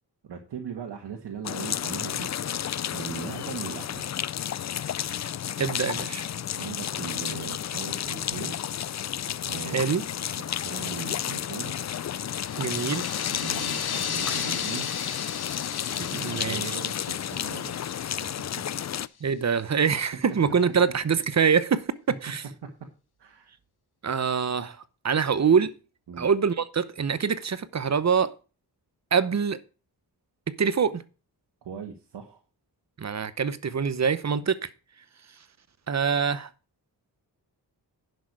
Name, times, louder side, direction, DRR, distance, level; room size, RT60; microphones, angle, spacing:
voice 1, 0.2-2.3 2.9-4.1 4.8-4.9 6.5-8.5 9.4-9.9 10.4-11.7 13.3-14.9 15.9-18.4 19.5-19.7 22.6-22.7 23.2-23.5 26.1-26.3 31.6-32.4, right 7 dB, 85° right, 1.7 m, -39 dB
sound 1, 1.4-19.1, left 10 dB, 45° left, 0.4 m, -32 dB
voice 2, 5.6-6.2 9.7-10.0 12.6-13.1 16.1-16.8 19.2-21.9 22.2-22.4 24.0-24.8 25.0-25.7 26.2-28.3 29.1-29.6 30.5-31.0 33.0-34.7 35.9-36.5, right 6 dB, 40° right, 0.9 m, -24 dB
sound 2, 12.3-18.6, left 7 dB, 65° left, 1.4 m, -35 dB
11.0 x 6.5 x 4.7 m
wide cardioid pair, 110°, 40 cm